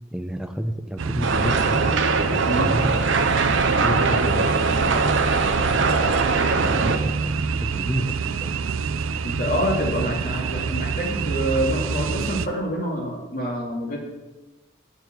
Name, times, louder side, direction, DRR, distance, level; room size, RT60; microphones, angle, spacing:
voice 1, 0.1-1.8 2.3-2.9 3.7-5.0 6.5-7.3 7.6-8.5, equal, 5° right, 6 dB, 0.6 m, -30 dB
sound 1, 1.0-12.5, right 5 dB, 90° right, 0.5 m, -27 dB
sound 2, 1.2-7.0, right 4 dB, 70° right, 0.9 m, -22 dB
voice 2, 9.2-14.0, equal, 45° left, -2 dB, 2.5 m, -26 dB
8.0 x 6.9 x 8.0 m, 1.1 s
head